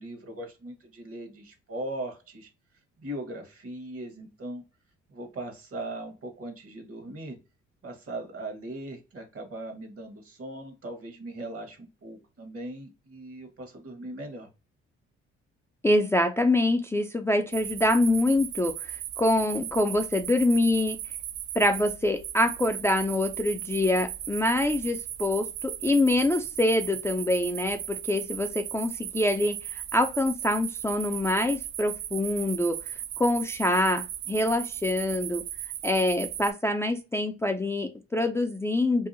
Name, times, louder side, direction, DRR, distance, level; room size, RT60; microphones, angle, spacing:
voice 1, 0.0-2.5 3.0-4.6 5.1-7.4 7.8-14.5, right 1 dB, 50° right, 6 dB, 1.1 m, -39 dB
voice 2, 15.8-21.0 21.6-35.4 35.8-39.1, left 1 dB, 10° left, 5 dB, 0.4 m, -25 dB
sound 1, 17.5-36.5, right 11 dB, 70° right, 0.4 m, -37 dB
2.7 x 2.3 x 2.5 m, 0.29 s
supercardioid pair, 60°, 29 cm